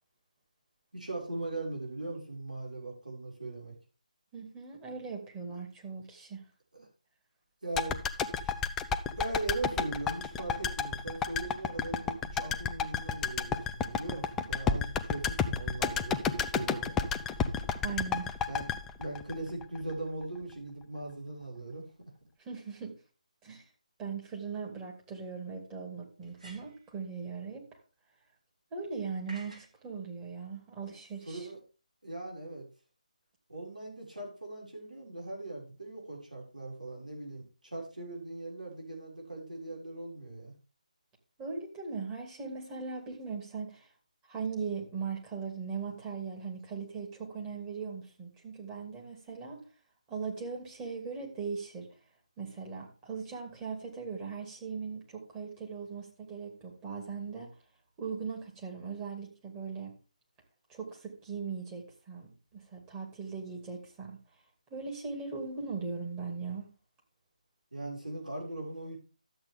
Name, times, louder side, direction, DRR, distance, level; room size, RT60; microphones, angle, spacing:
voice 1, 0.9-3.7 6.7-6.9 7.6-8.0 8.4-8.5 9.2-17.0 18.5-18.7 19.0-22.1 31.3-31.6 32.0-32.7 33.5-40.5 67.7-69.0, right 2 dB, 85° right, 6.3 m, -39 dB
voice 2, 4.3-6.4 17.8-18.3 22.4-23.0 23.4-23.6 24.0-27.7 28.7-31.5 41.4-43.9 44.3-49.6 50.1-51.9 52.4-57.5 58.0-59.9 60.7-64.2 64.7-66.7, right 5 dB, 15° right, 2.7 m, -39 dB
sound 1, 7.7-19.9 20.2-20.3, left 6 dB, 10° left, 0.5 m, -31 dB
sound 2, 24.4-24.5 26.2-26.9 29.3-29.7, right 1 dB, 65° right, 3.9 m, -51 dB
12.5 x 8.0 x 3.7 m
figure-of-eight pair, 150°, 4 cm